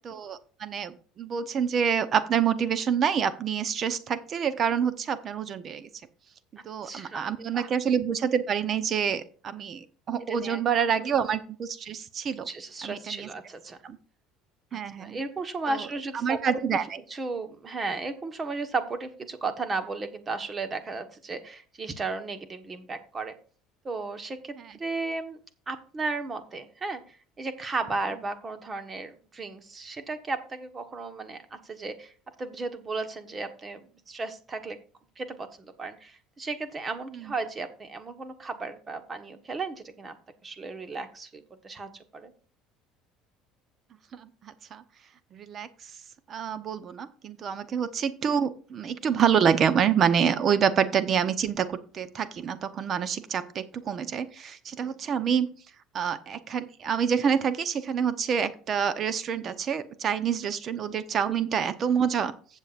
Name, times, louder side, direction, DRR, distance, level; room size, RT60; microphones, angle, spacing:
voice 1, 0.1-5.9 6.5-12.5 12.8-13.3 13.8-14.0 14.7-15.2 15.7-15.9 16.2-17.0 37.1-37.2 44.1-44.8 45.3-45.9 46.3-55.5 55.9-62.3, right 7 dB, 40° right, 12 dB, 0.9 m, -27 dB
voice 2, 6.8-7.7 10.3-10.6 12.4-13.8 15.0-16.6 17.1-23.3 23.8-25.4 25.7-32.1 32.4-34.8 35.2-40.2 40.4-42.3 54.7-55.0 61.3-61.4, right 3 dB, 25° right, 8 dB, 1.3 m, -35 dB
15.5 x 7.4 x 2.5 m, 0.41 s
supercardioid pair, 115°, 0 cm